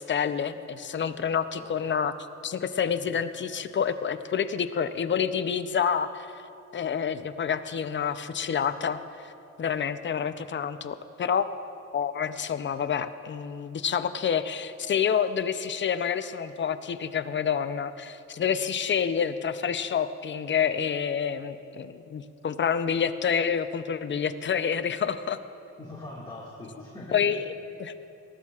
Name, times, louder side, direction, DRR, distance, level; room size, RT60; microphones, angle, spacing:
voice 1, 0.0-2.1 2.4-6.3 6.7-9.0 9.6-11.7 11.9-25.4 27.1-27.4 27.8-27.9, left 7 dB, 40° left, 11 dB, 0.6 m, -28 dB
voice 2, 1.6-1.9 2.9-3.1 25.8-27.3, left 2 dB, 15° left, -5 dB, 1.9 m, -42 dB
19.0 x 14.0 x 2.4 m, 2.7 s
cardioid pair, 90°, 30 cm